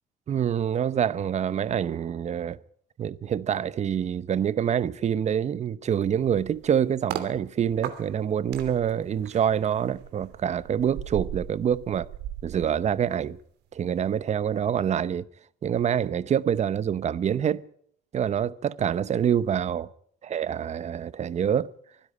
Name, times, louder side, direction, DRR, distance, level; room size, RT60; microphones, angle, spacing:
voice 1, 0.3-2.6 3.0-12.1 12.4-13.4 13.7-15.3 15.6-17.6 18.1-19.9 20.2-21.7, right 8 dB, 40° right, 0.9 m, -26 dB
sound 1, 6.0-7.3 7.8-13.4 13.7-14.0, right 12 dB, 85° right, 3.0 m, -38 dB
25.0 x 10.5 x 9.9 m
cardioid pair, 110°, 17 cm